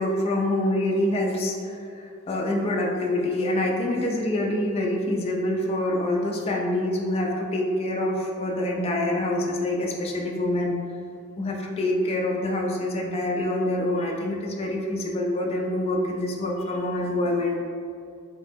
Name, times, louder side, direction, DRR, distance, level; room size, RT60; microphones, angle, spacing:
voice 1, 0.0-10.8 11.4-17.6, left 1 dB, 30° left, -1 dB, 0.3 m, -26 dB
3.1 x 2.9 x 3.3 m, 2.4 s
head